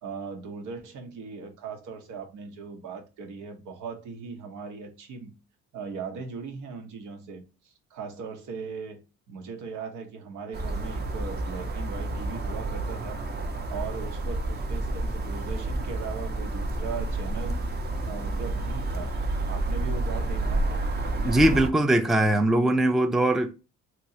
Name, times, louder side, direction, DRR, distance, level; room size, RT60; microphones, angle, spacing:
voice 1, 0.0-5.4 5.7-9.0 9.3-13.2 13.7-17.8 18.1-19.1 19.5-20.8, right 5 dB, 80° right, 0.9 m, -39 dB
sound 1, 10.5-21.7, right 2 dB, 35° right, 0.6 m, -30 dB
voice 2, 21.2-23.5, right 1 dB, ahead, 0.3 m, -21 dB
3.0 x 2.9 x 2.7 m
cardioid pair, 90°, 30 cm